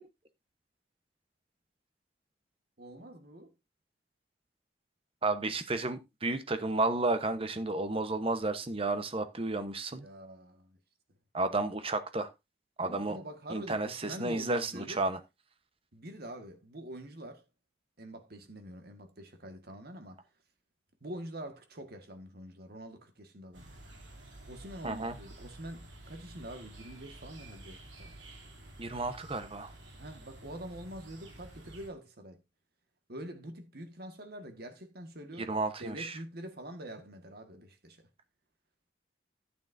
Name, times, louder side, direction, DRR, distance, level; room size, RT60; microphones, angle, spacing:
voice 1, 2.8-3.5 10.0-10.8 12.8-15.0 15.9-17.5 18.0-20.2 21.0-23.6 24.5-28.2 30.0-32.4 33.1-38.0, right 1 dB, 55° right, 1.7 m, -45 dB
voice 2, 5.2-10.0 11.3-12.3 12.8-13.2 13.5-15.2 24.8-25.2 28.8-29.7 35.4-36.2, right 2 dB, 30° right, 1.0 m, -32 dB
sound 1, 23.5-31.9, right 1 dB, 75° right, 3.1 m, -51 dB
11.5 x 8.8 x 2.7 m
head